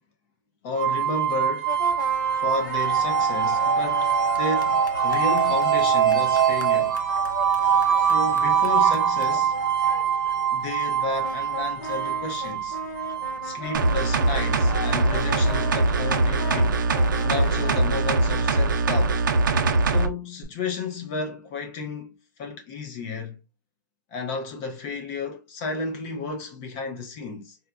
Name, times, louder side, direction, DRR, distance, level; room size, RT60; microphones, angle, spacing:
voice 1, 0.6-1.8 2.3-7.0 7.9-9.6 10.5-12.8 13.4-16.8 17.2-19.2 19.8-23.4 24.1-27.6, left 3 dB, 20° left, 0.4 m, -32 dB
sound 1, 0.8-15.7, right 8 dB, 30° right, 0.5 m, -23 dB
sound 2, 1.7-18.6, left 5 dB, 70° left, 0.6 m, -37 dB
sound 3, 13.7-20.1 20.4-20.5, right 3 dB, 75° right, 0.6 m, -22 dB
3.8 x 2.3 x 2.3 m
hypercardioid pair, 165°, 11 cm